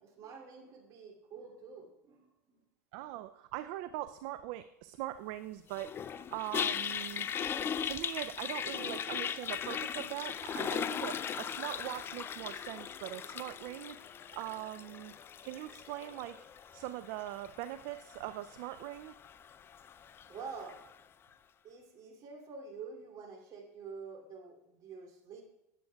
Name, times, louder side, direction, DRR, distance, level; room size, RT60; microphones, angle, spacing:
voice 1, 0.0-2.3 20.3-20.8 21.6-25.4, right 5 dB, 45° right, 0 dB, 2.7 m, -47 dB
voice 2, 2.9-7.3 7.8-14.0 14.3-15.1 15.4-16.4 16.7-19.1, right 14 dB, 60° right, 11 dB, 0.4 m, -41 dB
Toilet flush, 5.7-20.9, left 8 dB, 30° left, 0.4 m, -39 dB
19.0 x 7.6 x 2.3 m, 0.86 s
hypercardioid pair, 100°, 8 cm